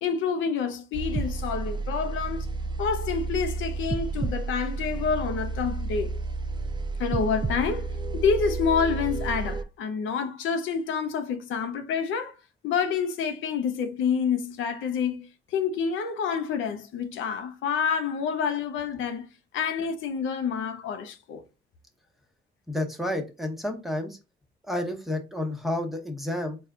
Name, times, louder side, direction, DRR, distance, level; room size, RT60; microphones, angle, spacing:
voice 1, 0.0-2.5 2.8-6.2 7.0-12.3 12.6-19.3 19.5-21.4, left 6 dB, 80° left, 0.6 m, -28 dB
sound 1, 0.9-9.6, right 3 dB, 25° right, 0.4 m, -31 dB
voice 2, 22.7-24.2 24.7-26.6, left 1 dB, ahead, 1.0 m, -30 dB
4.2 x 2.3 x 3.6 m
cardioid pair, 90°, 20 cm